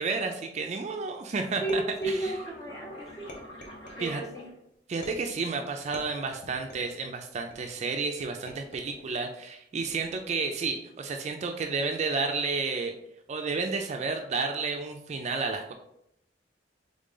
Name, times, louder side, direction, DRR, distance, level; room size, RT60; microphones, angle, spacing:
voice 1, 0.0-2.3 4.0-4.2 4.9-12.9 13.3-15.7, right 4 dB, 40° right, 4 dB, 0.4 m, -31 dB
voice 2, 1.6-3.3 4.0-4.5, right 1 dB, 20° left, -1 dB, 0.8 m, -33 dB
sound 1, 1.7-2.6 3.3-4.2 5.0-5.5 5.9-7.0 7.5-7.9 8.5-9.1 9.9-10.3, equal, 50° left, 0.8 m, -47 dB
sound 2, 2.0-5.0 5.8-6.3, equal, 75° left, 1.3 m, -46 dB
3.7 x 3.7 x 3.7 m, 0.78 s
head